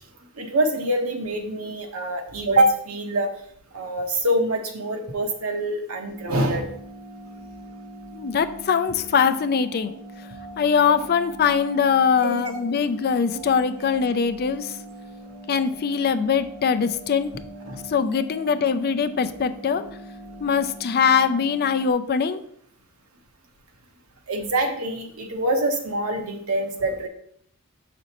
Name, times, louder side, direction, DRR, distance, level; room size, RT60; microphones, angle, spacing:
voice 1, 0.4-3.3 3.7-6.7 12.2-12.6 17.6-17.8 24.3-27.1, right 1 dB, 75° right, 2 dB, 1.0 m, -25 dB
sound 1, 6.1-21.9, right 1 dB, 45° right, 1.0 m, -42 dB
voice 2, 8.1-9.9 10.6-14.7 15.5-17.3 17.9-19.8 20.4-22.4, left 6 dB, 45° left, 11 dB, 0.4 m, -22 dB
6.7 x 5.0 x 3.0 m, 0.66 s
head